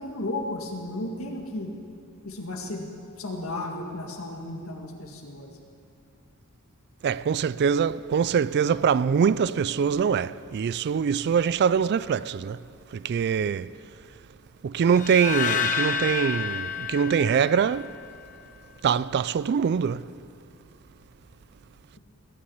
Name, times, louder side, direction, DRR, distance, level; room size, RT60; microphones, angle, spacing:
voice 1, 0.0-1.7 2.2-2.9 3.2-5.5, left 2 dB, 70° left, 2.0 m, -34 dB
voice 2, 7.0-12.6 12.9-13.7 14.6-17.9 18.8-20.1, right 7 dB, 50° right, 0.3 m, -23 dB
sound 1, 14.9-18.1, left 7 dB, 35° left, 1.0 m, -29 dB
19.0 x 7.1 x 9.4 m
head